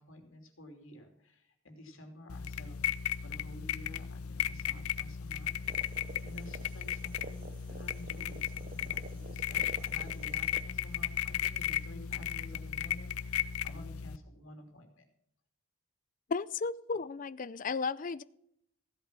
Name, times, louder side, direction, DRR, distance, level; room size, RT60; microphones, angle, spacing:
voice 1, 0.0-2.9 3.2-5.5 5.8-15.0 16.9-17.0, left 1 dB, 60° left, 4 dB, 3.0 m, -51 dB
sound 1, 2.3-14.2, left 9 dB, 80° left, 0.6 m, -35 dB
sound 2, 5.6-10.7, right 3 dB, 40° right, 0.5 m, -50 dB
voice 2, 16.3-18.2, left 4 dB, 35° left, 17 dB, 0.4 m, -34 dB
15.5 x 8.3 x 6.1 m, 0.73 s
head